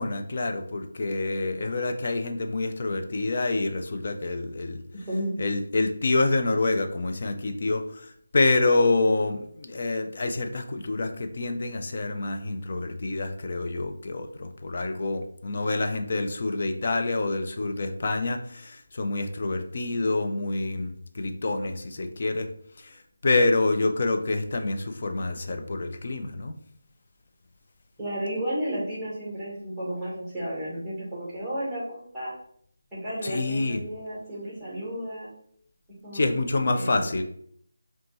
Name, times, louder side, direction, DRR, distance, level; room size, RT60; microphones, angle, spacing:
voice 1, 0.0-4.8 5.4-22.5 22.8-26.5 33.2-33.8 36.1-37.2, left 2 dB, 40° left, 5 dB, 0.4 m, -27 dB
voice 2, 4.9-5.3 28.0-32.3 32.9-35.3 36.0-36.3 36.7-37.1, right 1 dB, ahead, -7 dB, 1.0 m, -33 dB
5.1 x 2.3 x 3.0 m, 0.64 s
figure-of-eight pair, 175°, 0 cm